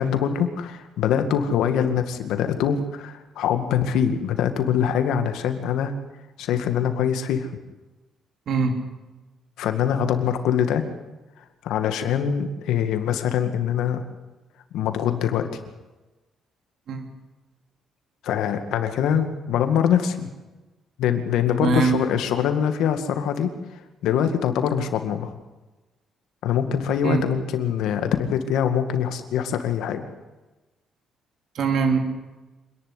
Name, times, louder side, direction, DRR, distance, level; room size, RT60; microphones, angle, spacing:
voice 1, 0.0-5.9 6.4-7.5 9.6-10.8 11.6-14.0 14.7-15.5 18.2-20.3 21.0-23.5 24.0-25.3 26.4-30.0, left 8 dB, 85° left, 8 dB, 2.1 m, -23 dB
voice 2, 21.6-22.0 27.0-27.2 31.5-32.0, right 4 dB, 65° right, 4 dB, 3.2 m, -21 dB
26.0 x 11.0 x 9.9 m, 1.1 s
cardioid pair, 90°, 0 cm